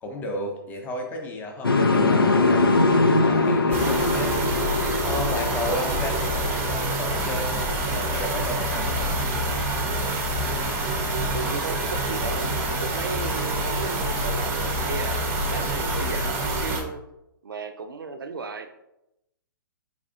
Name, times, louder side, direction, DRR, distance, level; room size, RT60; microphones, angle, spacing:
voice 1, 0.0-2.7 3.2-4.4 5.0-9.1, left 1 dB, 15° left, 2 dB, 0.7 m, -33 dB
sound 1, 1.6-7.6, left 3 dB, 80° left, 0.5 m, -22 dB
sound 2, 3.7-16.8, right 1 dB, 20° right, 0.7 m, -26 dB
voice 2, 11.1-17.0 17.4-18.7, right 4 dB, 70° right, 7 dB, 0.5 m, -35 dB
5.0 x 3.3 x 2.5 m, 0.87 s
figure-of-eight pair, 120°, 12 cm